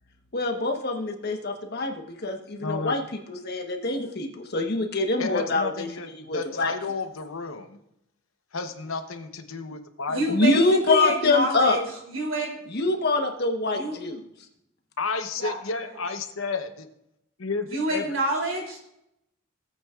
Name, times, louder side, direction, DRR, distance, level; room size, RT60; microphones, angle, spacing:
voice 1, 0.3-6.7 10.3-11.8 12.7-14.2, left 2 dB, 50° left, 4 dB, 1.2 m, -25 dB
voice 2, 2.6-3.0 5.2-7.8 8.5-10.2 15.0-16.8 17.4-18.0, left 4 dB, 85° left, 7 dB, 1.0 m, -32 dB
voice 3, 10.1-11.8 12.1-12.6 13.7-14.0 15.4-15.6 17.7-18.8, right 1 dB, 75° right, 0 dB, 3.1 m, -28 dB
18.5 x 8.5 x 2.5 m, 0.81 s
head